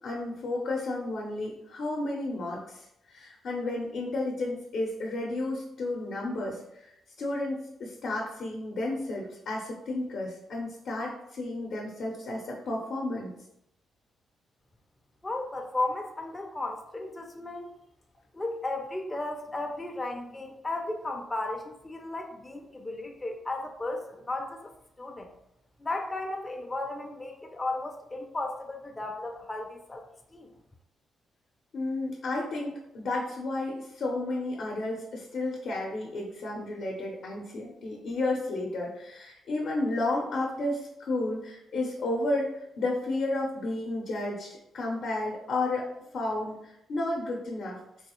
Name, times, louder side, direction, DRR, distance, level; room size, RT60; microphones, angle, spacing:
voice 1, 0.0-6.9 7.2-13.3 31.7-45.9 46.1-47.8, left 2 dB, 70° left, -2 dB, 0.7 m, -32 dB
voice 2, 15.2-17.8 18.3-24.7 25.0-25.3 25.8-30.0 30.3-30.5, left 2 dB, 20° left, 2 dB, 0.4 m, -34 dB
3.4 x 2.3 x 3.0 m, 0.82 s
cardioid pair, 85°, 0 cm